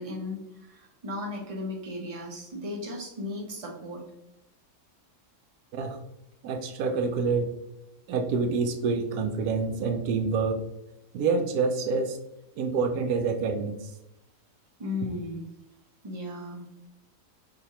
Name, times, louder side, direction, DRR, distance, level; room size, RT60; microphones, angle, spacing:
voice 1, 0.0-4.0 14.8-15.5 16.0-16.6, left 2 dB, 35° right, -1 dB, 0.5 m, -36 dB
voice 2, 6.4-7.5 8.1-10.6 11.1-12.2 12.6-13.9, right 4 dB, 90° right, 5 dB, 1.1 m, -27 dB
4.9 x 2.4 x 2.9 m, 0.86 s
omnidirectional pair, 1.6 m